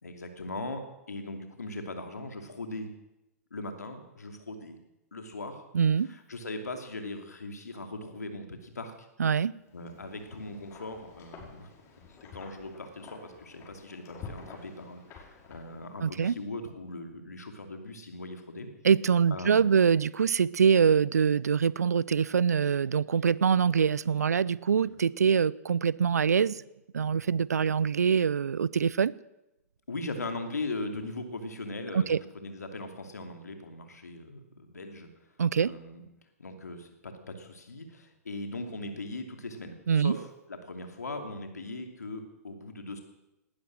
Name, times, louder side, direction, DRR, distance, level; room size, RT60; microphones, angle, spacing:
voice 1, 0.0-2.9 3.5-4.8 5.1-5.6 6.0-9.1 9.7-11.7 12.1-18.7 19.3-19.9 29.9-35.1 35.5-36.0 36.4-43.0, left 2 dB, 80° left, 6 dB, 2.7 m, -39 dB
voice 2, 5.7-6.1 9.2-9.6 16.0-16.3 18.8-26.6 26.9-29.1 31.9-32.2 35.4-35.7 39.9-40.2, right 7 dB, 80° right, 23 dB, 0.5 m, -24 dB
Wind, 9.7-16.2, left 5 dB, 30° left, 5.3 m, -49 dB
18.5 x 12.5 x 6.3 m, 0.94 s
figure-of-eight pair, 105°, 9 cm